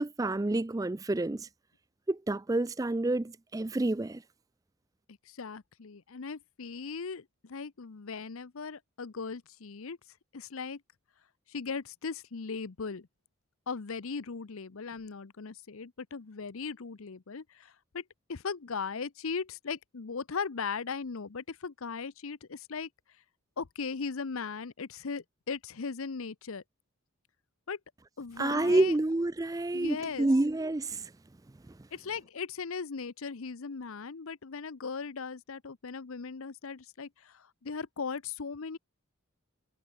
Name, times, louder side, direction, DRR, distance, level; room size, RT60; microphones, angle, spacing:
voice 1, 0.0-1.5 2.1-4.2 28.4-31.1, right 2 dB, 15° right, 0.3 m, -28 dB
voice 2, 5.3-10.0 10.3-10.8 11.5-13.1 13.7-18.0 18.3-22.9 23.6-26.6 27.7-27.8 28.2-29.0 29.7-30.3 31.9-38.8, left 5 dB, 70° left, 0.7 m, -38 dB
head